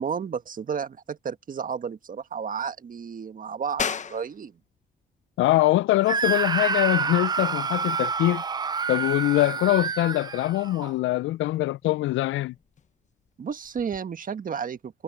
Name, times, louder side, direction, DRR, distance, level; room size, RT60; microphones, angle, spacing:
voice 1, 0.0-4.6 13.4-15.0, right 6 dB, 45° right, 1.5 m, -32 dB
sound 1, 3.8-14.0, left 6 dB, 40° left, 0.9 m, -41 dB
voice 2, 5.4-8.4 8.9-12.5, left 16 dB, 75° left, 0.4 m, -23 dB
Screaming, 6.1-10.9, right 5 dB, 20° right, 0.3 m, -28 dB
cardioid pair, 90°, 20 cm